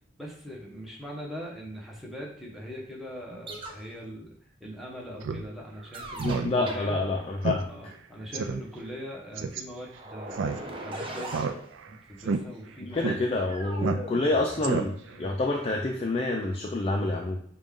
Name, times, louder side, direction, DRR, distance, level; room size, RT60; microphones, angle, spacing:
voice 1, 0.2-4.3 4.6-7.0 7.7-11.5 11.9-13.2 15.1-15.3, equal, ahead, -4 dB, 0.9 m, -41 dB
sound 1, 3.3-3.8 5.9-6.9 9.9-11.7 13.5-15.2, right 1 dB, 30° right, 0.5 m, -39 dB
Speech synthesizer, 5.2-5.4 5.8-5.9 6.2-6.5 6.8-6.9 7.4-7.6 7.9-8.0 8.3-8.6 9.4-9.6 10.3-10.9 11.3-11.9 12.2-12.4 13.0-13.2 13.8-14.3 14.6-15.1, right 5 dB, 85° right, 0.4 m, -30 dB
voice 2, 6.2-7.7 12.9-17.4, left 2 dB, 30° left, 1 dB, 0.4 m, -28 dB
5.0 x 2.3 x 3.6 m, 0.65 s
head